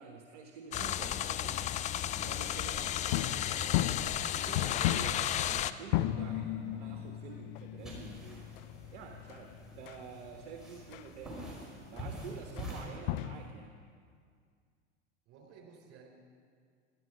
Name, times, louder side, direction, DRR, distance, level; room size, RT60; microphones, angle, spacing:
voice 1, 0.0-1.6 2.1-3.6 4.2-8.5 8.9-13.7, right 6 dB, 60° right, 3 dB, 1.3 m, -48 dB
sound 1, 0.7-5.7, left 11 dB, 20° left, 0.3 m, -33 dB
voice 2, 2.7-3.9 15.3-16.1, right 6 dB, 40° right, 1 dB, 3.9 m, -54 dB
sound 2, 3.0-11.1 11.4-11.5 12.0-12.1 12.6-12.7 13.0-13.5, left 13 dB, 50° left, 0.7 m, -36 dB
sound 3, 7.8-12.8, equal, ahead, 5.0 m, -46 dB
17.5 x 13.0 x 5.0 m, 2.1 s
figure-of-eight pair, 80°, 35 cm